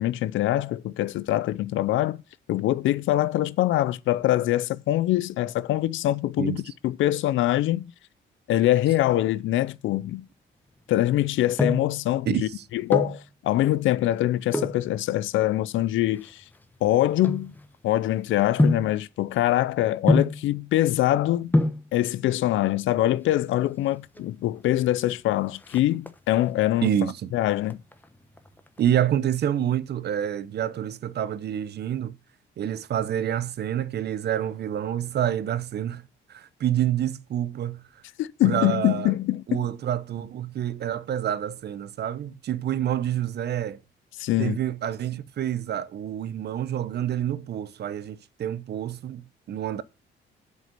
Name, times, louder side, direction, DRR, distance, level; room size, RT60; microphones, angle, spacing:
voice 1, 0.0-2.2 2.5-7.9 8.5-10.3 10.9-16.4 16.8-17.5 17.8-21.5 21.9-26.9 27.3-27.8 38.2-39.7 44.2-44.6, left 14 dB, 80° left, 0.5 m, -24 dB
sound 1, 11.2-12.0 12.7-13.2 14.5-14.9 15.6-18.0 18.6-19.0 20.1-20.5 21.2-21.3 21.5-21.9 23.0-23.5 23.8-23.9 24.2-24.3 24.7-25.1 25.4-26.4 26.9-27.3 27.6-28.8 29.1-29.2, left 1 dB, 10° left, 1.0 m, -26 dB
voice 2, 26.8-27.3 28.8-32.1 32.6-37.8 38.4-39.1 39.5-43.8 44.4-49.8, right 10 dB, 55° right, 0.7 m, -28 dB
7.7 x 5.3 x 6.6 m
cardioid pair, 90°, 20 cm